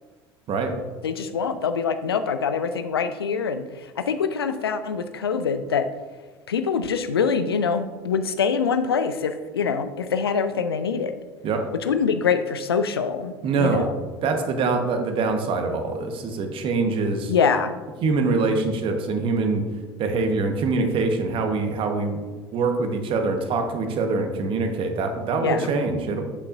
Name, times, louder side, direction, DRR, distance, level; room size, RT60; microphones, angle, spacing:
voice 1, 1.0-3.6 4.0-5.9 6.5-11.1 11.8-13.9 17.3-17.8 25.4-25.7, left 6 dB, 75° left, 10 dB, 0.5 m, -24 dB
voice 2, 13.4-13.9 14.2-17.3 18.0-19.6 20.0-26.2, right 3 dB, 40° right, 5 dB, 1.3 m, -24 dB
8.5 x 8.3 x 2.6 m, 1.4 s
figure-of-eight pair, 65°, 13 cm